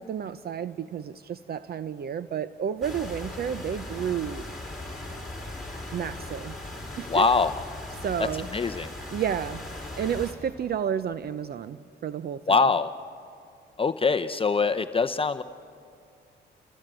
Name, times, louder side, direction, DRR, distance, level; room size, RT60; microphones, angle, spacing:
voice 1, 0.0-4.4 5.9-6.6 7.0-7.3 8.0-8.5 9.1-9.6 10.0-12.6, right 8 dB, 50° right, 14 dB, 0.7 m, -31 dB
sound 1, 2.8-10.3, left 1 dB, ahead, 5.4 m, -38 dB
voice 2, 7.1-7.5 8.5-8.9 12.5-12.9 13.8-15.4, left 4 dB, 25° left, 9 dB, 0.7 m, -23 dB
28.5 x 20.5 x 9.1 m, 2.4 s
cardioid pair, 90°, 20 cm